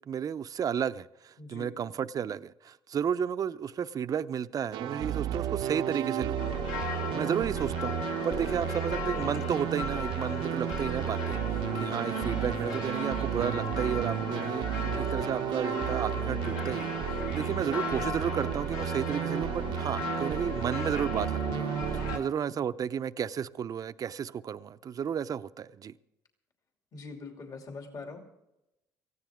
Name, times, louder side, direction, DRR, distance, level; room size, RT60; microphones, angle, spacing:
voice 1, 0.1-6.4 7.1-11.4 11.7-25.9, right 8 dB, 45° right, 0.6 m, -33 dB
voice 2, 1.4-1.8 22.0-22.2 26.9-28.2, left 4 dB, 45° left, 2.6 m, -43 dB
sound 1, 4.7-22.2, right 11 dB, 75° right, 0.8 m, -33 dB
sound 2, 6.4-22.2, left 5 dB, 85° left, 2.3 m, -37 dB
19.0 x 15.0 x 3.6 m
supercardioid pair, 80°, 8 cm